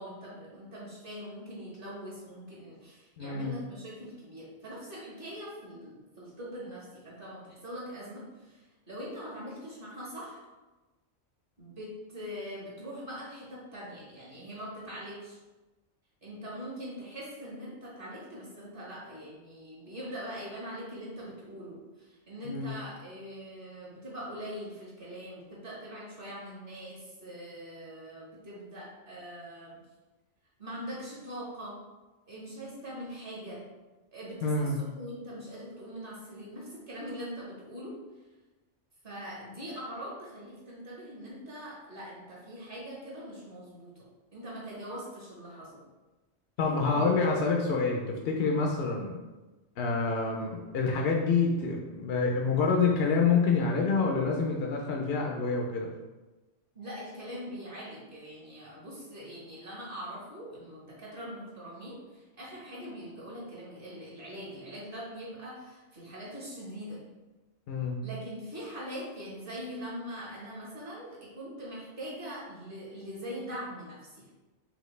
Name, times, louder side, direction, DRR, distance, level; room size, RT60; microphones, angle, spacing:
voice 1, 0.0-10.4 11.6-15.4 16.2-29.8 30.6-31.8 32.3-33.6 34.1-37.9 39.0-44.0 44.3-45.8 46.6-47.1 56.7-67.0 68.0-74.3, equal, 50° right, -6 dB, 1.4 m, -42 dB
voice 2, 3.2-3.5 22.4-22.7 34.4-34.8 46.6-49.2 49.8-55.9 67.7-68.0, left 4 dB, 65° left, 0 dB, 0.7 m, -27 dB
4.9 x 2.7 x 3.1 m, 1.2 s
omnidirectional pair, 1.2 m